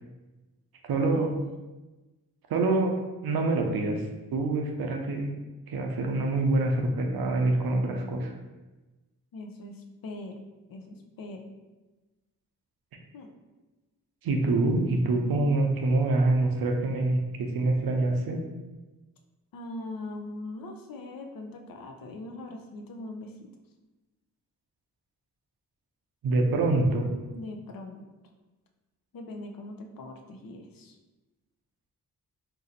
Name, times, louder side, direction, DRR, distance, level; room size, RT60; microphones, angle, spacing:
voice 1, 0.8-1.3 2.5-2.9 3.2-4.0 4.3-5.3 5.7-8.3 14.2-18.4 26.2-27.1, right 2 dB, 75° right, 2 dB, 0.6 m, -25 dB
voice 2, 9.3-10.4 10.7-11.4 13.1-13.3 19.5-23.5 27.3-28.1 29.1-31.0, left 2 dB, 65° left, 3 dB, 0.5 m, -41 dB
2.6 x 2.0 x 3.9 m, 1.1 s
cardioid pair, 45°, 37 cm